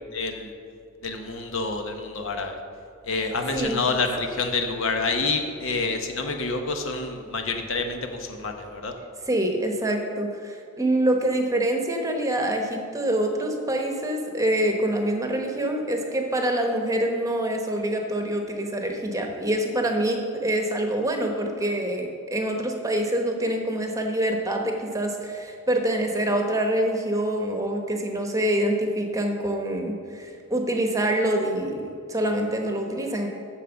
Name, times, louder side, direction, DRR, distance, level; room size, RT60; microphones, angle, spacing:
voice 1, 0.1-0.5 1.0-2.5 3.0-8.9, left 3 dB, 65° left, 4 dB, 1.0 m, -28 dB
voice 2, 9.3-33.3, right 1 dB, 15° right, 3 dB, 1.0 m, -25 dB
9.0 x 6.5 x 7.0 m, 2.4 s
head